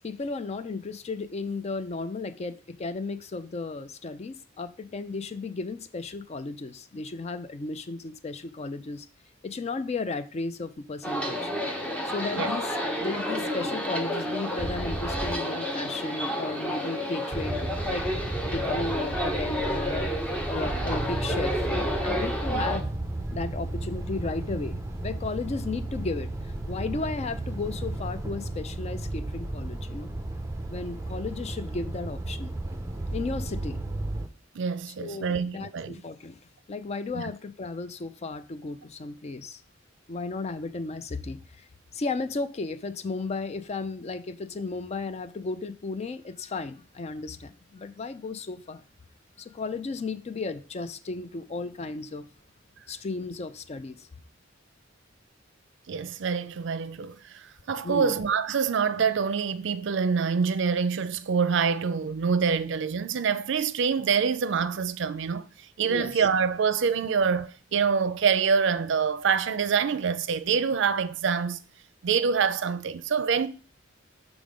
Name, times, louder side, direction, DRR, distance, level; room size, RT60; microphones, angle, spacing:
voice 1, 0.0-9.1 9.4-11.5 12.0-17.6 17.9-18.1 18.4-20.1 20.5-22.9 23.3-26.3 26.7-30.1 30.7-32.5 33.1-33.8 34.9-36.4 36.7-39.6 40.1-41.7 41.9-48.8 49.4-52.3 52.9-54.1 57.8-58.1 65.9-66.2, left 3 dB, 35° left, 0.4 m, -34 dB
sound 1, 11.0-22.8, equal, 5° left, 0.9 m, -30 dB
sound 2, 14.6-15.3 17.3-34.3, right 2 dB, 15° right, 0.6 m, -33 dB
voice 2, 34.5-36.0 37.1-37.2 55.9-65.5 65.8-71.6 72.0-73.5, right 6 dB, 65° right, 0.5 m, -26 dB
6.1 x 3.7 x 5.0 m
head